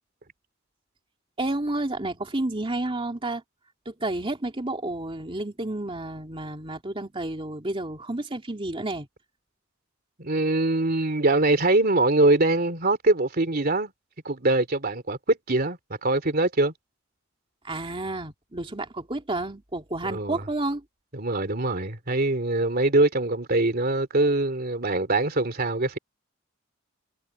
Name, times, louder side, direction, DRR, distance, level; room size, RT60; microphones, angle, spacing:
voice 1, 1.4-3.4 3.9-9.1 17.6-20.8, right 2 dB, 25° right, 2.7 m, -30 dB
voice 2, 10.2-13.9 14.2-16.7 20.0-20.4 21.1-26.0, right 2 dB, 50° right, 3.0 m, -23 dB
head